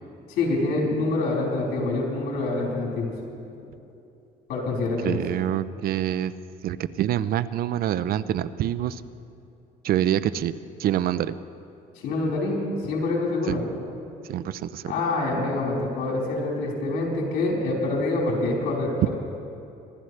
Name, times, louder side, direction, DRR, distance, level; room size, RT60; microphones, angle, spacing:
voice 1, 0.3-3.1 4.5-5.2 12.0-13.6 14.9-18.9, left 2 dB, 85° left, -3 dB, 4.3 m, -26 dB
voice 2, 5.0-6.3 6.6-9.0 9.8-10.5 10.8-11.4 13.5-13.6 14.3-14.9, right 11 dB, 60° right, 15 dB, 0.5 m, -26 dB
25.5 x 12.5 x 3.3 m, 2.6 s
cardioid pair, 110°, 17 cm